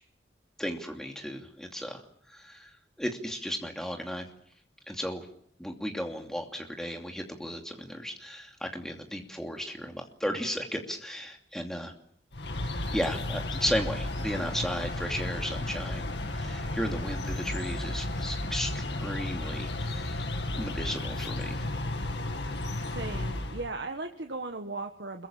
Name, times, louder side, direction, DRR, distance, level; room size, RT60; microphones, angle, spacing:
voice 1, 0.6-2.0 2.3-2.7 3.0-4.3 4.9-5.3 5.6-11.9 12.9-20.3 20.5-21.6, equal, 5° left, 2 dB, 2.7 m, -35 dB
sound 1, 12.3-23.7, left 1 dB, 75° left, 2.2 m, -33 dB
voice 2, 22.8-25.3, right 3 dB, 70° right, 4 dB, 1.4 m, -37 dB
26.5 x 22.5 x 7.3 m, 0.68 s
head